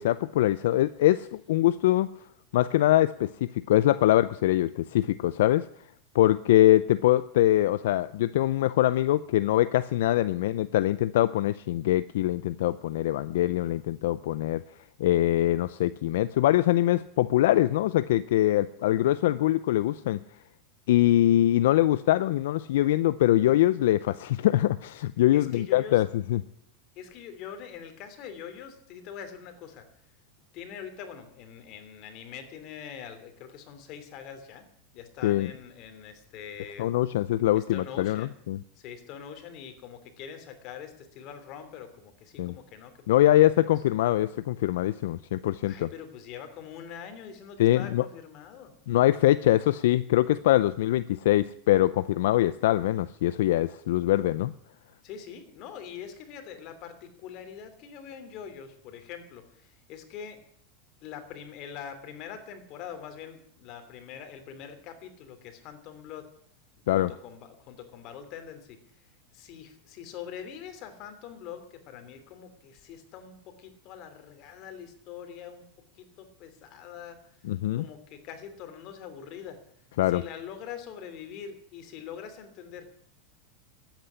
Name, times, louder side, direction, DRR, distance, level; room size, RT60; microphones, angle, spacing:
voice 1, 0.0-2.1 2.5-5.6 6.1-14.6 15.0-20.2 20.9-26.4 35.2-35.5 36.8-38.6 42.4-42.5 43.1-45.9 47.6-48.0 48.9-54.5 66.9-67.1 77.4-77.8 80.0-80.2, left 14 dB, 75° left, 14 dB, 0.5 m, -23 dB
voice 2, 25.3-26.0 26.9-29.9 30.5-34.7 34.9-36.9 37.5-38.3 38.7-43.7 45.6-48.7 55.0-60.4 61.0-66.3 66.9-75.6 75.9-77.2 77.7-79.6 80.1-82.9, left 8 dB, 45° left, 8 dB, 2.9 m, -43 dB
13.5 x 9.1 x 9.8 m, 0.68 s
supercardioid pair, 145°, 0 cm